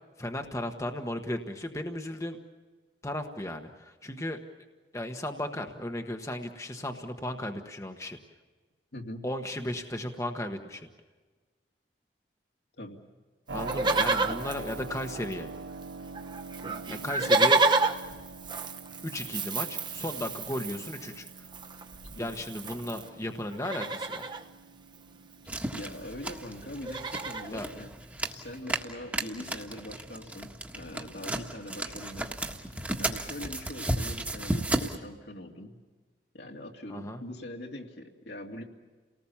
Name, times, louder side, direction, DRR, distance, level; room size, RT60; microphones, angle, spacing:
voice 1, 0.2-2.4 3.0-4.4 4.9-8.2 9.2-10.9 13.5-15.5 16.9-17.6 19.0-21.5 22.2-24.2 27.5-27.7 36.9-37.2, left 1 dB, 15° left, 5 dB, 1.2 m, -35 dB
voice 2, 8.9-9.3 12.8-13.0 22.1-22.3 25.7-27.9 28.3-32.3 33.0-35.8 36.3-38.6, left 1 dB, 70° left, 2 dB, 2.7 m, -42 dB
Livestock farm animals working animals, 13.5-15.6 15.8-15.9 16.1-23.1 23.5-24.4 25.7-25.8 25.9-26.2 26.6-27.5 28.1-28.2, right 3 dB, 25° right, 1.1 m, -30 dB
Keyboard (musical), 13.5-26.2, right 3 dB, 80° right, 1.0 m, -44 dB
sound 1, 25.5-35.0, right 1 dB, 10° right, 1.6 m, -34 dB
29.5 x 19.0 x 7.2 m, 1.3 s
head